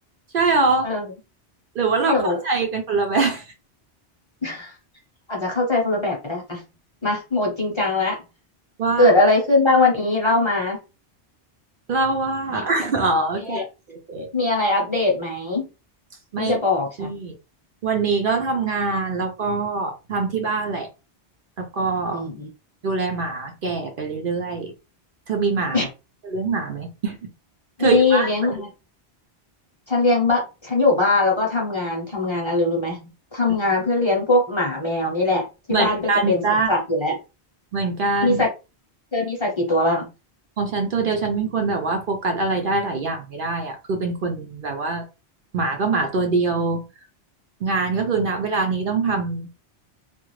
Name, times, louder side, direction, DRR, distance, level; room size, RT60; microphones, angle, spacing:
voice 1, 0.3-0.9 1.7-3.5 8.8-9.1 11.9-14.3 16.3-16.5 17.0-17.3 17.8-20.9 21.6-22.2 22.8-24.7 25.3-25.9 26.2-27.2 27.8-28.5 35.7-36.7 37.7-38.4 40.6-45.0 45.5-46.8 47.6-49.5, right 3 dB, 60° right, 0.7 m, -23 dB
voice 2, 2.0-2.4 4.4-4.7 5.3-6.6 7.0-8.2 9.0-10.8 12.5-12.6 13.4-13.6 14.3-15.7 16.4-17.1 22.1-22.5 25.7-25.9 27.8-28.7 29.9-33.0 33.3-35.4 35.7-36.4 36.7-37.1 38.2-38.5 39.1-40.1, left 2 dB, 30° left, 0.8 m, -21 dB
2.4 x 2.3 x 3.1 m
omnidirectional pair, 1.1 m